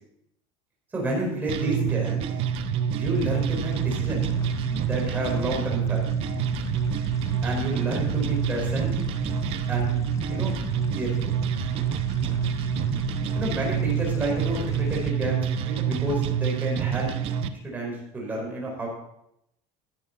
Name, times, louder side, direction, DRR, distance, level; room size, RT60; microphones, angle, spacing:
voice 1, 0.9-2.3 2.9-4.3 4.8-6.0 7.4-8.9 9.7-9.9 10.3-10.5 10.9-11.3 13.4-17.1 17.6-18.9, right 1 dB, 15° right, -2 dB, 4.9 m, -30 dB
sound 1, 1.5-17.5, right 9 dB, 45° right, 0.8 m, -27 dB
sound 2, 3.1-15.1, left 8 dB, 25° left, 0.5 m, -37 dB
15.5 x 10.5 x 4.1 m, 0.77 s
cardioid pair, 170°, 13 cm